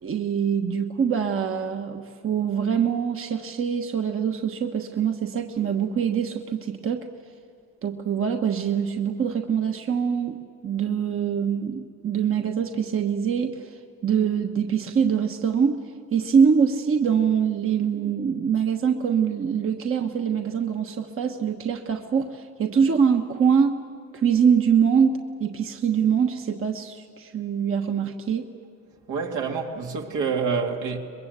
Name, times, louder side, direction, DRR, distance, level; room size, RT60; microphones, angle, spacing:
voice 1, 0.0-7.1 7.8-10.4 10.6-15.8 16.1-23.8 24.1-28.5, right 7 dB, 45° right, 1.3 m, -24 dB
voice 2, 29.1-31.0, right 5 dB, 80° right, 2.7 m, -27 dB
23.5 x 21.5 x 8.2 m
cardioid pair, 90°, 30 cm